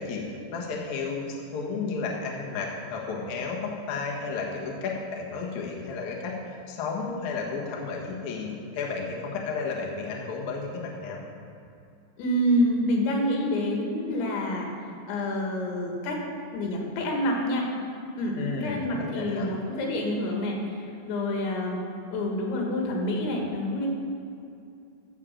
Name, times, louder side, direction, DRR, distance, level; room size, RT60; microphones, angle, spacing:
voice 1, 0.0-6.4 6.7-11.2 18.4-19.5, left 4 dB, 65° left, -2 dB, 2.0 m, -32 dB
voice 2, 12.2-14.7 15.1-16.2 16.5-17.7 18.2-20.6 21.0-21.8 22.1-23.9, left 1 dB, 90° left, 0 dB, 3.9 m, -27 dB
14.0 x 5.1 x 7.4 m, 2.6 s
omnidirectional pair, 5.1 m